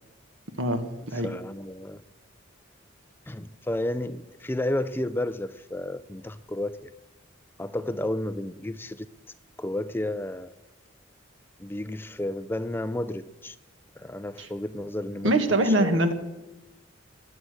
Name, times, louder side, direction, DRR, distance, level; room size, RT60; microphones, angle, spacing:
voice 1, 1.2-2.0 3.3-6.9 7.6-9.1 9.6-10.5 11.6-13.6 14.0-15.3 15.7-16.0, left 1 dB, 10° left, 13 dB, 0.4 m, -32 dB
voice 2, 15.2-16.1, right 1 dB, 70° right, 8 dB, 1.7 m, -23 dB
19.5 x 8.7 x 7.8 m, 1.0 s
head